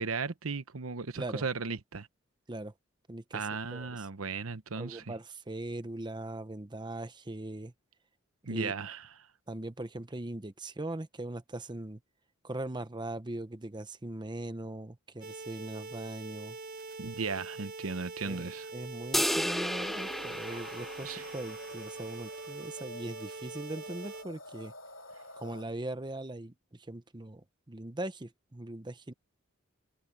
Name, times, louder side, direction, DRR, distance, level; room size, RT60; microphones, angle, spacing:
voice 1, 0.0-2.1 3.3-5.1 8.4-9.1 17.0-18.7 21.0-21.3, right 4 dB, 80° right, 1.0 m, -36 dB
voice 2, 3.1-4.1 4.7-7.7 8.5-8.7 9.5-12.0 12.4-16.6 18.2-18.5 18.7-24.7 25.4-29.1, right 1 dB, 20° right, 0.9 m, -40 dB
sound 1, 15.2-24.2, right 3 dB, 45° right, 5.5 m, -44 dB
sound 2, 19.1-21.7, equal, ahead, 0.6 m, -33 dB
sound 3, 20.5-25.6, left 1 dB, 65° left, 3.1 m, -50 dB
head